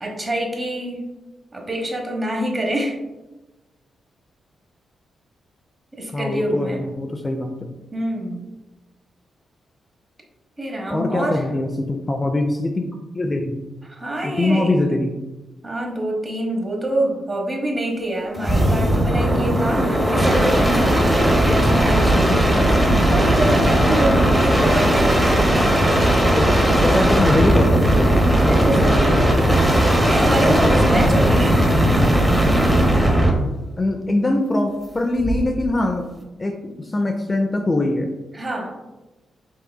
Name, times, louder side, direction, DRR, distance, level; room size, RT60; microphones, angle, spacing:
voice 1, 0.0-1.0 1.5-3.0 5.9-6.8 7.9-8.4 10.6-11.4 13.8-14.7 15.6-25.7 28.4-29.1 30.0-31.6 38.3-38.7, right 1 dB, 25° right, 0 dB, 1.1 m, -26 dB
voice 2, 6.1-7.5 10.9-12.9 13.1-13.6 14.2-15.1 26.3-28.1 30.5-31.1 33.8-36.1 36.4-38.1, left 2 dB, 25° left, 4 dB, 0.4 m, -22 dB
sound 1, 18.4-33.4 35.2-35.6, right 1 dB, 5° right, 0.8 m, -17 dB
5.5 x 3.8 x 2.2 m, 1.1 s
cardioid pair, 100°, 0 cm